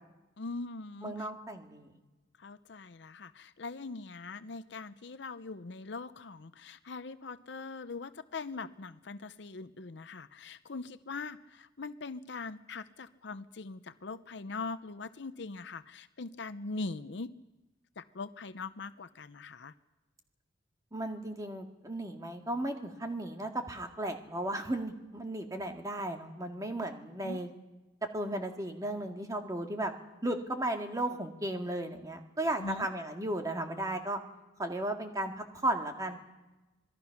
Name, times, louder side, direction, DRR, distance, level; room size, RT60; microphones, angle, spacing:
voice 1, 0.4-1.3 2.4-17.3 18.0-19.7 27.2-27.4 32.6-32.9, left 3 dB, 65° left, 13 dB, 0.7 m, -42 dB
voice 2, 1.0-1.9 20.9-27.5 28.1-29.9 30.2-34.2 34.6-36.2, right 1 dB, 20° right, 4 dB, 2.0 m, -35 dB
26.0 x 20.0 x 5.9 m, 1.1 s
head